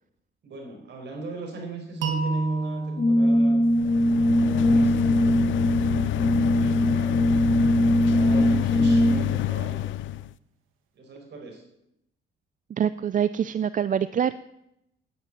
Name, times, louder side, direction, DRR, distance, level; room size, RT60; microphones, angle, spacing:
voice 1, 0.4-3.6 4.0-5.6 6.0-7.2 7.7-10.2 10.9-11.6, right 2 dB, 60° right, 1 dB, 5.0 m, -40 dB
sound 1, 2.0-4.9, right 3 dB, 85° right, 2.0 m, -31 dB
Brass instrument, 3.0-9.4, equal, 40° left, 2.2 m, -21 dB
sound 2, 3.7-10.3, left 14 dB, 75° left, 0.5 m, -27 dB
voice 2, 12.8-14.3, right 8 dB, 40° right, 14 dB, 0.5 m, -25 dB
9.6 x 9.6 x 9.0 m, 0.82 s
cardioid pair, 90°, 20 cm